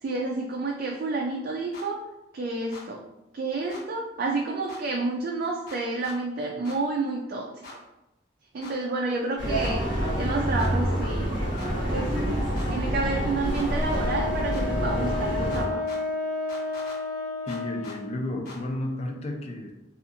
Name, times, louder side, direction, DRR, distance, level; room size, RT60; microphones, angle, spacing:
voice 1, 0.0-2.0 2.3-3.0 3.3-7.6 8.5-9.8 10.2-11.4 11.9-12.2 12.7-15.8, right 3 dB, 55° right, -1 dB, 0.3 m, -30 dB
sound 1, 1.7-1.9 2.7-2.9 3.7-3.8 4.7-4.8 5.7-6.2 6.6-6.8 7.6-7.8 8.6-8.8 9.6-9.7 10.6-10.7 11.6-11.7 12.5-12.7 13.5-13.7 14.5-14.7 15.5-16.0 16.5-17.0 17.5-18.0 18.4-18.6, left 3 dB, 60° left, 0.8 m, -43 dB
sound 2, 9.4-15.7, equal, 80° left, 1.0 m, -27 dB
Wind instrument woodwind instrument, 13.7-18.2, left 3 dB, 10° right, 0.6 m, -31 dB
voice 2, 17.5-19.7, left 1 dB, 35° left, 3 dB, 0.4 m, -32 dB
2.7 x 2.4 x 2.5 m, 0.95 s
head